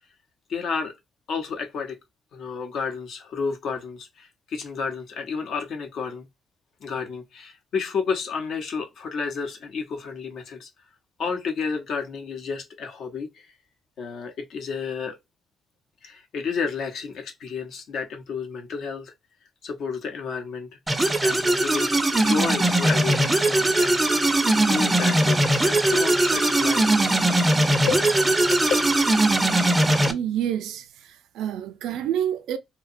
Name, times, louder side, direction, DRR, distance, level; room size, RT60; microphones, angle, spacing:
voice 1, 0.5-0.9 1.3-2.0 2.3-6.3 6.8-10.7 11.2-13.5 14.0-15.2 16.0-19.1 19.6-20.8 21.2-27.2 27.8-28.2 28.5-28.6, left 5 dB, 70° left, 0.7 m, -31 dB
sound 1, 20.9-30.1, right 1 dB, 15° right, 0.4 m, -20 dB
voice 2, 30.1-30.8 31.3-32.6, right 10 dB, 85° right, 0.3 m, -27 dB
2.7 x 2.1 x 2.5 m
cardioid pair, 90°, 0 cm